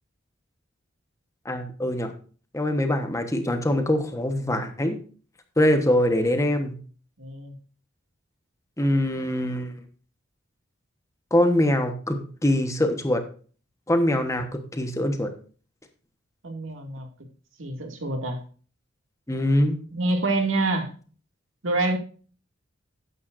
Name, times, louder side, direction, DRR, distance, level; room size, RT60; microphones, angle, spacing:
voice 1, 1.4-2.1 2.5-5.0 5.6-6.7 8.8-9.7 11.3-13.2 13.9-15.3 19.3-19.8, left 1 dB, 15° left, 6 dB, 1.2 m, -23 dB
voice 2, 7.2-7.6 16.4-17.1 17.6-18.4 19.9-20.9 21.6-22.0, right 2 dB, 80° right, 4 dB, 2.3 m, -26 dB
13.0 x 9.4 x 2.6 m, 0.40 s
head